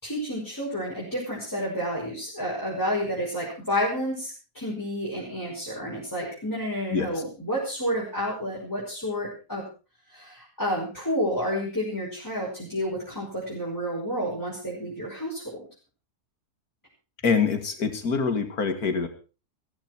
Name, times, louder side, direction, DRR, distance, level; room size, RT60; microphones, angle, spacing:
voice 1, 0.0-9.6 10.1-15.6, equal, 10° left, -6 dB, 5.7 m, -30 dB
voice 2, 17.2-19.1, left 5 dB, 65° left, 8 dB, 2.4 m, -25 dB
15.5 x 15.0 x 4.7 m, 0.34 s
omnidirectional pair, 1.7 m